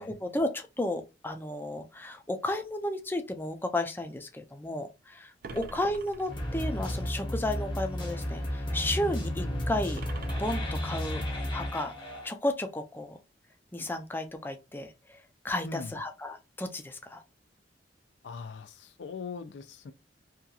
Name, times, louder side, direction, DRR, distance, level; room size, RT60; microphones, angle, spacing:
voice 1, 0.0-10.0 10.4-11.2 11.5-11.9 12.2-13.2 13.7-14.9 15.4-17.2, left 1 dB, 10° left, 0.4 m, -33 dB
sound 1, 5.4-6.9 10.0-11.5, right 4 dB, 55° right, 0.4 m, -46 dB
sound 2, 6.3-12.3, left 1 dB, 30° left, 0.8 m, -33 dB
voice 2, 15.6-16.0 18.2-19.9, left 5 dB, 80° left, 0.4 m, -41 dB
2.8 x 2.3 x 2.3 m
head